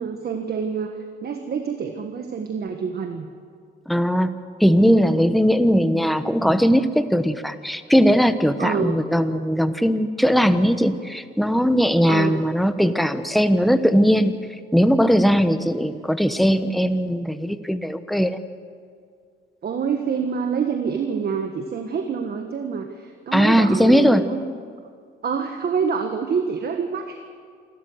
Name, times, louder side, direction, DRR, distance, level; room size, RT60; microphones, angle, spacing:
voice 1, 0.0-3.3 8.6-9.0 12.0-12.4 19.6-24.4 25.2-27.3, right 6 dB, 50° right, 5 dB, 1.5 m, -27 dB
voice 2, 3.9-4.3 4.6-14.3 14.7-18.4 23.3-24.2, equal, ahead, 10 dB, 1.1 m, -19 dB
27.5 x 13.5 x 8.0 m, 2.2 s
cardioid pair, 90°, 20 cm